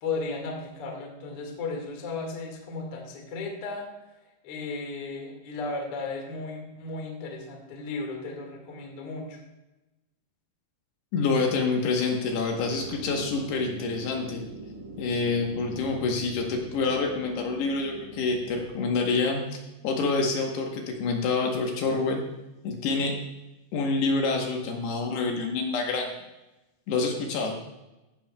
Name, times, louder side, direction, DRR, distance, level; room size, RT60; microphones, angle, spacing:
voice 1, 0.0-3.9 4.4-9.4, left 3 dB, 50° left, 1 dB, 1.7 m, -35 dB
voice 2, 11.1-14.4 15.0-19.6 19.8-22.2 22.6-23.2 23.7-26.1 26.9-27.6, left 4 dB, 70° left, 1 dB, 3.0 m, -27 dB
sound 1, 12.6-18.7, right 3 dB, 90° right, 1.4 m, -42 dB
15.0 x 11.5 x 2.3 m, 1.0 s
omnidirectional pair, 5.4 m